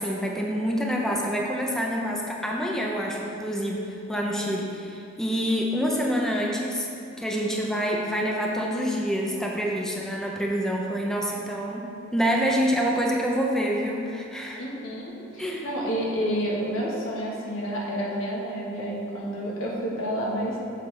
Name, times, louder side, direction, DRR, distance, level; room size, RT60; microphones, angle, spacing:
voice 1, 0.0-6.9 7.2-14.6 15.4-15.7, equal, 5° left, -2 dB, 0.5 m, -27 dB
voice 2, 14.6-20.6, equal, 85° left, -4 dB, 1.4 m, -29 dB
7.3 x 5.6 x 3.3 m, 2.6 s
head